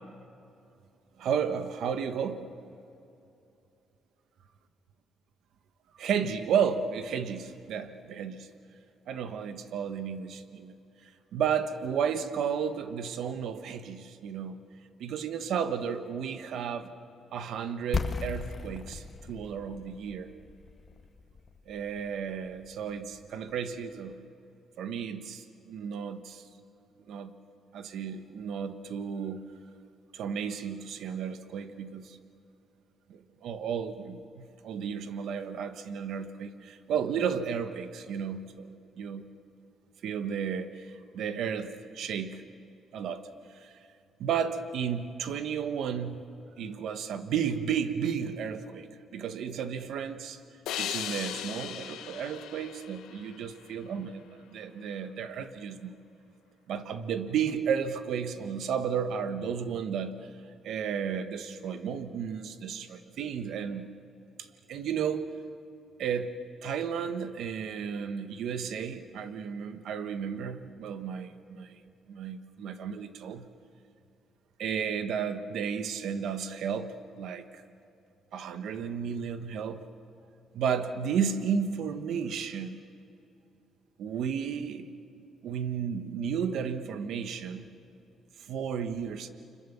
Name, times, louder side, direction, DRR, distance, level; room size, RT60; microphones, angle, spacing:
voice 1, 1.2-2.4 6.0-8.5 9.1-10.8 11.3-14.6 15.0-16.9 17.3-20.3 21.7-24.2 24.8-26.4 27.1-27.3 27.7-29.4 30.1-32.2 33.1-39.3 40.0-40.8 41.1-42.4 42.9-43.3 43.6-43.7 44.2-46.2 46.6-50.4 50.8-56.0 56.7-60.1 60.6-63.9 64.7-65.3 66.0-66.3 66.6-71.7 72.1-73.5 74.6-77.4 78.3-79.8 80.5-82.7 84.0-84.9 85.4-87.6 88.5-89.3, right 7 dB, 75° right, 9 dB, 1.4 m, -33 dB
sound 1, 17.9-23.7, left 4 dB, 35° left, 1.8 m, -37 dB
sound 2, 50.7-54.0, left 10 dB, 90° left, 1.2 m, -38 dB
30.0 x 25.0 x 7.1 m, 2.7 s
cardioid pair, 90°, 0 cm